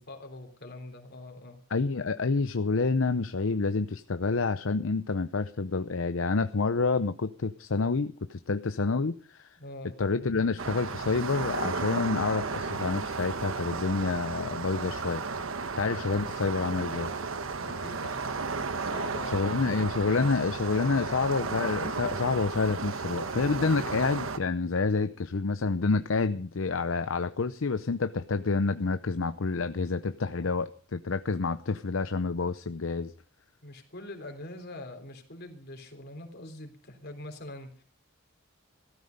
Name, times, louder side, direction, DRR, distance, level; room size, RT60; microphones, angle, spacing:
voice 1, 0.0-1.6 9.6-9.9 17.7-18.4 18.7-19.8 20.7-21.2 30.3-30.6 33.6-37.8, left 2 dB, 50° left, 5 dB, 3.6 m, -43 dB
voice 2, 1.7-9.6 10.0-15.2 15.8-17.1 19.3-33.1, left 4 dB, 70° left, 11 dB, 0.7 m, -28 dB
sound 1, 10.6-24.4, right 4 dB, 75° right, 1.2 m, -34 dB
16.5 x 13.5 x 5.3 m, 0.41 s
head